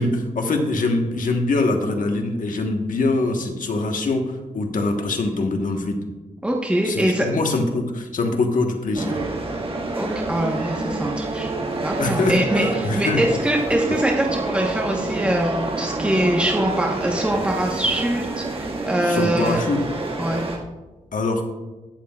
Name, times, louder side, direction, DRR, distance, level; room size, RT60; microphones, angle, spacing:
voice 1, 0.0-6.0 6.8-9.2 12.0-13.2 19.0-19.8 21.1-21.4, left 2 dB, 70° left, 3 dB, 1.3 m, -23 dB
voice 2, 6.4-7.3 10.0-19.6 20.2-20.4, right 1 dB, 10° right, -1 dB, 1.2 m, -23 dB
sound 1, 8.9-20.6, right 2 dB, 40° right, 1.8 m, -27 dB
21.0 x 7.4 x 2.4 m, 1.2 s
cardioid pair, 75°, 14 cm